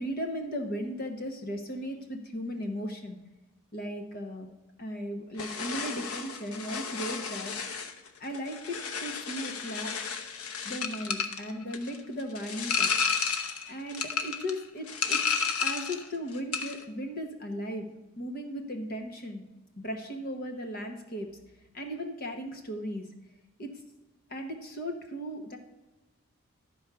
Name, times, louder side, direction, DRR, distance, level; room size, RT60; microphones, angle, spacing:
voice 1, 0.0-3.2 3.7-4.5 4.8-7.5 8.2-9.9 10.6-12.9 13.7-15.2 15.6-19.4 19.8-21.3 21.7-23.1 23.6-23.7 24.3-25.6, equal, 40° left, 4 dB, 1.0 m, -36 dB
sound 1, 5.4-16.1 16.3-16.8, left 6 dB, 85° left, 1.0 m, -32 dB
12.0 x 4.7 x 6.7 m, 1.1 s
head